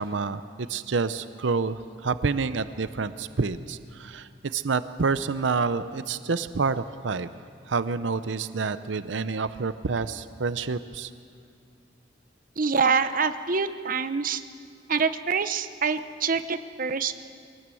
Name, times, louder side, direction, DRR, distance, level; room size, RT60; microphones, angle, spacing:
voice 1, 0.0-7.3 7.7-11.1, right 4 dB, 85° right, 12 dB, 0.7 m, -28 dB
voice 2, 12.6-14.4 14.9-17.1, right 5 dB, 50° right, 11 dB, 0.8 m, -25 dB
24.0 x 18.5 x 7.8 m, 2.2 s
head